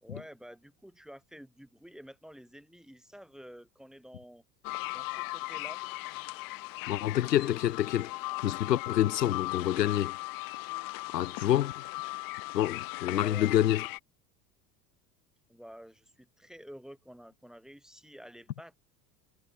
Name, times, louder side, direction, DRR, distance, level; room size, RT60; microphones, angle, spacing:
voice 1, 0.0-4.4 4.9-5.8 13.1-13.5 15.5-18.8, equal, ahead, 1.9 m, -50 dB
sound 1, 4.6-14.0, left 22 dB, 45° left, 1.3 m, -38 dB
voice 2, 6.9-8.1 8.4-10.2 11.1-11.7 12.5-13.8, left 12 dB, 80° left, 0.7 m, -27 dB
figure-of-eight pair, 75°, 49 cm